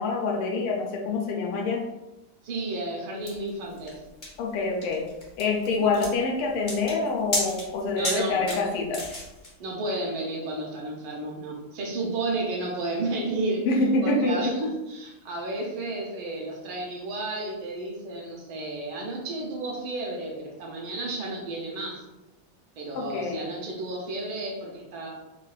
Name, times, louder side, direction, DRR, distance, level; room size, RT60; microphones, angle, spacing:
voice 1, 0.0-1.8 4.4-5.1 5.4-9.0 13.7-14.5 22.9-23.5, left 3 dB, 90° left, 1 dB, 1.5 m, -26 dB
voice 2, 2.4-4.0 8.0-8.6 9.6-13.7 14.0-22.0 22.8-25.1, right 2 dB, 75° right, -1 dB, 1.4 m, -32 dB
sound 1, 3.3-9.5, left 1 dB, 55° left, 0.5 m, -34 dB
4.0 x 2.2 x 2.3 m, 1.0 s
omnidirectional pair, 2.4 m